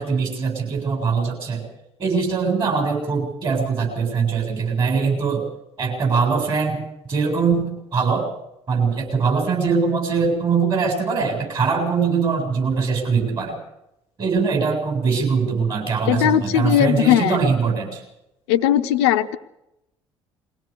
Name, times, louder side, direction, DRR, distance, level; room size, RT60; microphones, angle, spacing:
voice 1, 0.0-1.6 2.0-5.5 5.8-6.8 7.1-8.3 8.7-13.6 14.2-18.0, right 5 dB, 35° right, 2 dB, 7.6 m, -22 dB
voice 2, 16.1-17.4 18.5-19.4, left 11 dB, 65° left, 11 dB, 0.8 m, -18 dB
22.5 x 17.0 x 6.9 m, 0.87 s
figure-of-eight pair, 55°, 15 cm